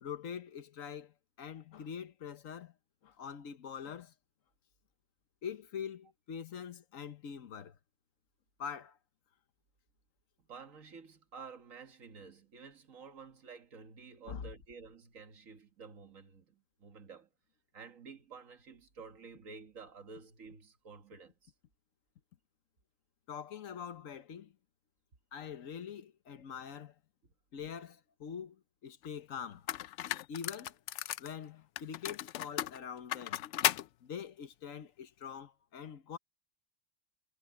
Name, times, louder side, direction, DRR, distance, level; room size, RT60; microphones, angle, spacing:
voice 1, 0.0-2.7 3.0-4.1 5.4-7.8 8.6-9.0 14.3-14.5 23.3-24.5 25.3-26.9 27.5-29.7 30.3-30.8 31.2-33.4 34.0-36.2, left 7 dB, 90° left, 1.4 m, -44 dB
voice 2, 10.4-17.3 17.7-21.5, right 5 dB, 90° right, 2.0 m, -51 dB
sound 1, 29.0-29.1 29.7-31.3 31.8-33.9, left 12 dB, 70° left, 0.8 m, -35 dB
omnidirectional pair, 1.3 m